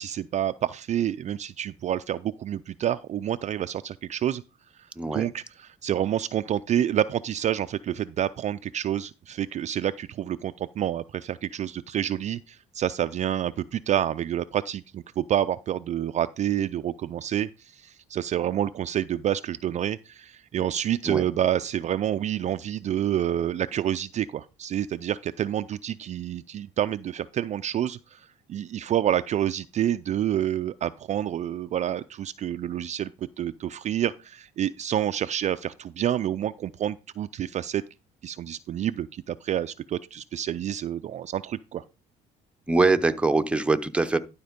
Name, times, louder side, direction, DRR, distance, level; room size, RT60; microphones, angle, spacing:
voice 1, 0.0-4.4 4.8-33.1 33.4-37.8 38.2-41.8, right 11 dB, 45° right, 0.4 m, -28 dB
voice 2, 42.7-44.2, right 3 dB, 5° right, 0.7 m, -23 dB
12.0 x 4.4 x 5.1 m
cardioid pair, 110°, 17 cm